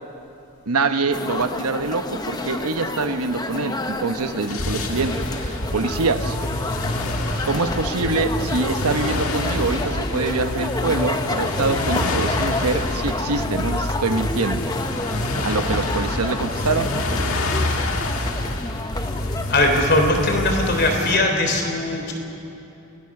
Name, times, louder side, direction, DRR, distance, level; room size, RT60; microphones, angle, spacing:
voice 1, 0.7-6.4 7.4-14.7 15.4-16.9, right 3 dB, 90° right, 8 dB, 1.1 m, -25 dB
sound 1, 1.1-19.9, left 2 dB, 20° left, 0.8 m, -30 dB
sound 2, 4.5-21.2, left 1 dB, 75° left, 1.8 m, -27 dB
voice 2, 19.5-22.1, left 2 dB, 45° left, 3 dB, 3.5 m, -20 dB
28.5 x 20.5 x 6.0 m, 2.8 s
head